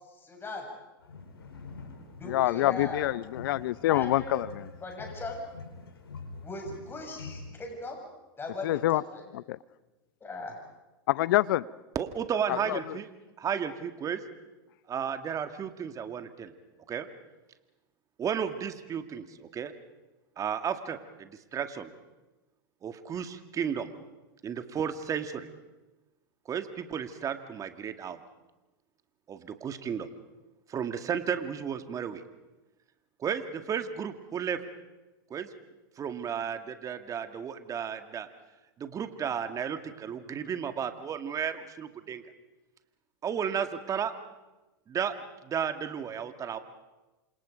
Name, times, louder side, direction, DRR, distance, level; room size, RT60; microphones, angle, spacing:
voice 1, 0.2-0.7 2.2-3.0 3.9-4.5 4.8-5.4 6.4-8.0 8.4-9.2 10.2-10.6, left 2 dB, 20° left, 1 dB, 7.2 m, -38 dB
sound 1, 1.0-7.5, left 4 dB, 90° left, 4.3 m, -45 dB
voice 2, 2.3-4.7 8.6-9.0 9.3-9.6 11.1-11.6 12.5-13.0, left 15 dB, 65° left, 19 dB, 0.7 m, -26 dB
voice 3, 12.0-13.1 13.4-14.2 14.9-16.5 16.9-17.1 18.2-19.7 20.4-21.9 22.8-23.9 24.4-25.5 26.5-28.2 29.3-30.1 30.7-32.2 33.2-34.6 35.3-35.5 36.0-38.3 38.8-42.2 43.2-44.1 44.9-45.1 45.4-46.6, right 7 dB, 25° right, 8 dB, 1.9 m, -33 dB
28.0 x 26.5 x 5.2 m, 1.1 s
hypercardioid pair, 105°, 12 cm